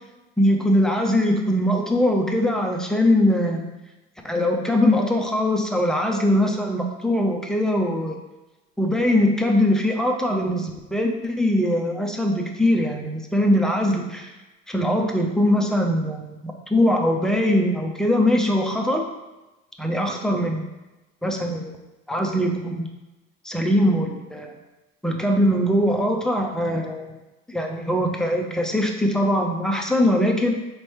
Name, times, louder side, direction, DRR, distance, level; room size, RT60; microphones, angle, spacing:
voice 1, 0.4-3.7 4.2-8.2 8.8-14.3 14.7-19.0 19.8-20.7 21.2-21.8 22.1-22.9 23.4-24.5 25.0-27.1 27.5-30.5, left 1 dB, ahead, 1 dB, 0.5 m, -21 dB
4.3 x 3.1 x 3.0 m, 1.0 s
hypercardioid pair, 70°, 39 cm